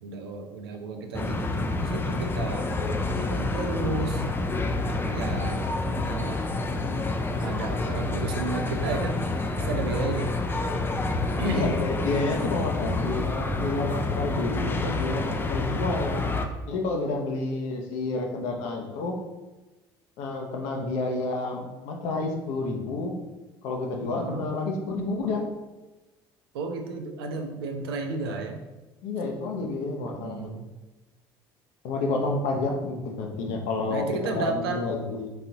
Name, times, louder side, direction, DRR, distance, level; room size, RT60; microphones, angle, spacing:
voice 1, 0.0-2.7 3.1-4.2 5.1-6.4 7.4-10.3 11.4-11.7 24.1-24.5 26.5-28.6 30.0-30.7 33.9-34.8, right 3 dB, 75° right, 4 dB, 0.6 m, -32 dB
sound 1, 1.1-16.5, left 2 dB, 15° left, 0.5 m, -28 dB
voice 2, 11.4-16.2 16.7-19.2 20.2-23.1 23.6-25.5 29.0-30.5 31.8-35.3, left 3 dB, 60° left, 2 dB, 0.8 m, -29 dB
4.0 x 3.8 x 2.9 m, 1.1 s
figure-of-eight pair, 60°, 13 cm